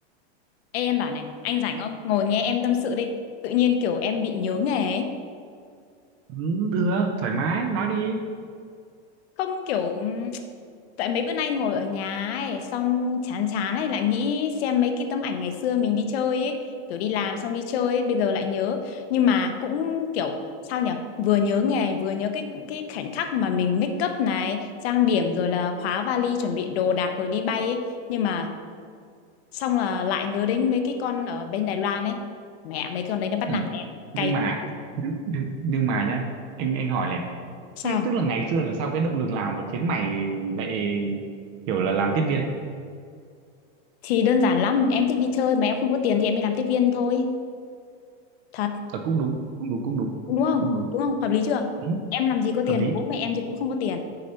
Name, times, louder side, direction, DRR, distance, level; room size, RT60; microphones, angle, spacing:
voice 1, 0.7-3.2 3.4-5.1 9.4-10.4 11.0-20.4 20.7-28.5 29.5-32.2 32.6-33.8 34.2-34.4 34.6-34.8 37.8-38.1 44.0-47.4 48.5-48.8 50.3-51.7 52.1-54.0, left 7 dB, 60° left, 7 dB, 0.7 m, -25 dB
voice 2, 6.3-8.3 33.5-33.7 34.1-34.7 35.0-36.2 36.6-37.3 37.8-41.2 41.7-42.5 48.9-50.2 50.6-50.9 51.8-52.0 52.7-53.0, right 4 dB, 30° right, 4 dB, 0.4 m, -26 dB
6.6 x 4.1 x 5.5 m, 2.2 s
supercardioid pair, 155°, 35 cm